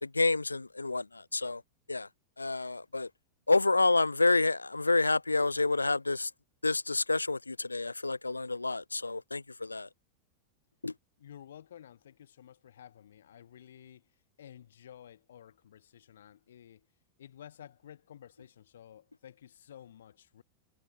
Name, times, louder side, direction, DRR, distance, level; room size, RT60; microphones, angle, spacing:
voice 1, 0.0-1.6 1.9-2.1 2.4-3.1 3.5-6.3 6.6-9.9 10.8-10.9, left 3 dB, 80° left, 0.7 m, -28 dB
voice 2, 11.2-14.0 14.4-16.9 17.2-20.4, left 10 dB, 65° left, 2.2 m, -53 dB
figure-of-eight pair, 90°, 0 cm